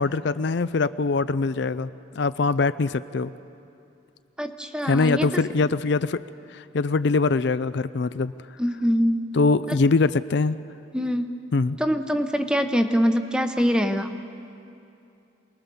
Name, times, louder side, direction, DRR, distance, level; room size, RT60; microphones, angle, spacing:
voice 1, 0.0-1.9 2.2-3.3 4.8-6.2 6.5-8.3 9.3-10.6 11.5-11.8, left 3 dB, 60° left, 14 dB, 0.5 m, -23 dB
voice 2, 4.4-5.4 8.6-9.3 9.7-9.8 10.9-11.3 11.8-14.1, equal, 5° right, 7 dB, 0.9 m, -24 dB
27.5 x 20.5 x 7.0 m, 2.7 s
head